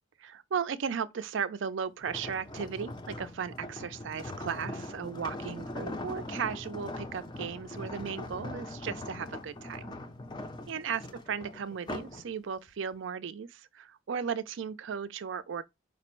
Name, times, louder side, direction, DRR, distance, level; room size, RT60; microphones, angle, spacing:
voice 1, 0.2-9.9 10.7-11.0 11.3-15.6, right 6 dB, 65° right, 0.4 m, -36 dB
sound 1, 2.0-12.2 12.7-12.9, left 2 dB, 20° left, 0.4 m, -41 dB
5.1 x 2.0 x 4.3 m
head